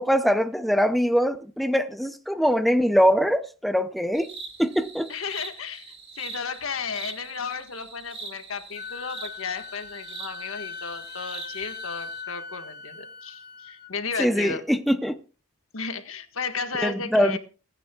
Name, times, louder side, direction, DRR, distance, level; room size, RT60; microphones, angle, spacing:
voice 1, 0.0-4.3 4.6-5.1 14.2-15.2 16.8-17.4, equal, ahead, 0.5 m, -22 dB
sound 1, 4.1-12.2, right 4 dB, 30° right, 3.6 m, -42 dB
voice 2, 5.1-14.6 15.7-17.4, left 5 dB, 85° left, 1.6 m, -34 dB
Wind instrument woodwind instrument, 8.7-13.9, left 5 dB, 50° left, 1.3 m, -40 dB
29.0 x 9.8 x 2.4 m
head